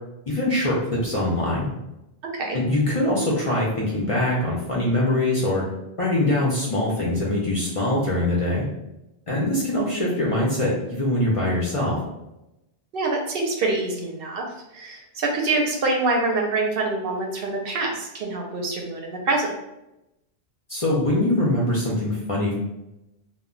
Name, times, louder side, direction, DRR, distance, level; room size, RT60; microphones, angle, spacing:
voice 1, 0.3-1.7 2.5-5.6 6.0-8.6 9.3-12.0 20.7-22.5, left 1 dB, 45° left, -5 dB, 0.5 m, -23 dB
voice 2, 2.2-2.6 12.9-14.5 14.7-19.5, right 3 dB, 70° right, 0 dB, 0.8 m, -25 dB
2.1 x 2.1 x 3.7 m, 0.93 s
omnidirectional pair, 1.0 m